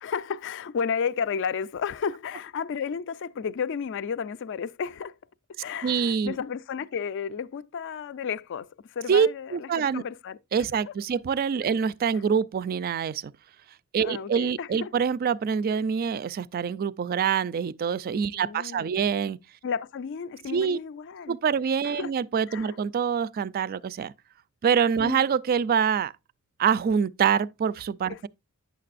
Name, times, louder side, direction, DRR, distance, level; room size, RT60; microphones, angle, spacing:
voice 1, 0.0-5.1 5.6-10.4 10.9-11.0 14.0-14.9 18.3-19.2 19.6-21.4 21.8-22.1 22.5-22.8 25.0-25.2 28.1-28.3, left 6 dB, 60° left, 0.4 m, -32 dB
voice 2, 5.8-6.3 9.1-10.0 10.5-13.3 13.9-19.4 20.5-20.8 21.3-24.1 24.6-26.1 26.6-28.3, right 7 dB, 45° right, 0.3 m, -25 dB
9.2 x 6.7 x 2.4 m
head